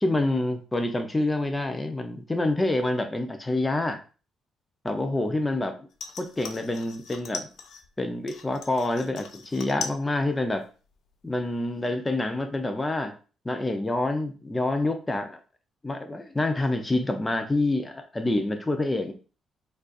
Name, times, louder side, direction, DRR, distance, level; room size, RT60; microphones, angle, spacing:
voice 1, 0.0-4.0 4.8-5.9 6.2-7.5 8.0-10.6 11.2-13.1 13.4-15.4 15.8-19.1, left 2 dB, 15° left, 6 dB, 0.6 m, -27 dB
sound 1, 5.9-7.9 8.3-10.1 10.3-10.9 11.3-11.4, left 6 dB, 75° left, 0.4 m, -39 dB
4.3 x 2.5 x 2.4 m, 0.35 s
cardioid pair, 90°, 0 cm